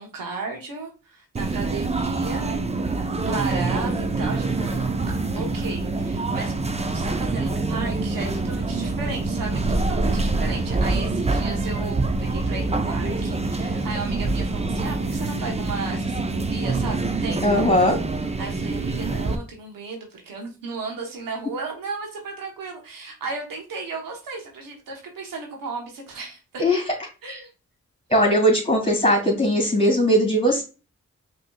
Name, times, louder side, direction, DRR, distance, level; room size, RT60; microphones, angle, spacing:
voice 1, 0.0-2.5 3.3-4.8 5.3-6.5 6.8-17.4 18.4-26.6 27.2-27.5, right 3 dB, 90° right, 1 dB, 1.0 m, -35 dB
sound 1, 1.4-19.4, right 3 dB, 20° right, 0.6 m, -25 dB
voice 2, 17.4-18.0 26.6-26.8 28.1-30.6, equal, 15° left, 2 dB, 2.4 m, -19 dB
5.3 x 3.0 x 2.2 m, 0.32 s
cardioid pair, 45°, 33 cm